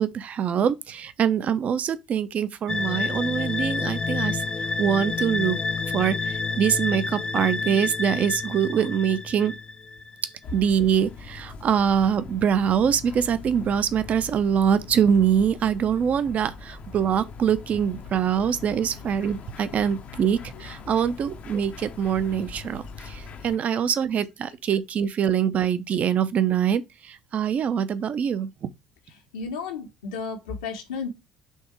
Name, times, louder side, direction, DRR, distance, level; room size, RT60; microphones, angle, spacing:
voice 1, 0.0-4.4 4.8-5.6 5.9-9.5 10.5-28.5, right 8 dB, 45° right, 0.8 m, -24 dB
sound 1, 2.7-10.2, left 4 dB, 25° left, 0.6 m, -29 dB
sound 2, 10.4-23.6, left 5 dB, 45° left, 0.9 m, -42 dB
voice 2, 29.3-31.1, left 5 dB, 75° left, 1.6 m, -33 dB
5.6 x 3.6 x 4.7 m
figure-of-eight pair, 60°, 3 cm